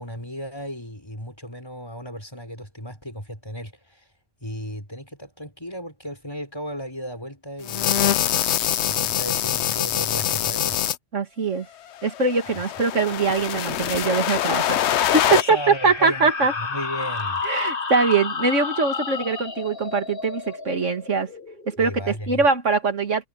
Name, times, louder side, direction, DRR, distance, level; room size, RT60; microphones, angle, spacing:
voice 1, 0.0-4.0 4.4-8.1 8.9-10.8 15.2-16.3 16.6-17.4 21.8-22.4, equal, 20° left, 6.0 m, -35 dB
sound 1, 7.6-11.0 12.1-15.4, left 11 dB, 70° left, 0.9 m, -24 dB
voice 2, 11.1-11.7 12.0-16.5 17.4-21.3 21.7-23.3, right 4 dB, 90° right, 2.5 m, -22 dB
sound 2, 14.9-22.2, left 4 dB, 50° left, 1.7 m, -31 dB
omnidirectional pair, 1.2 m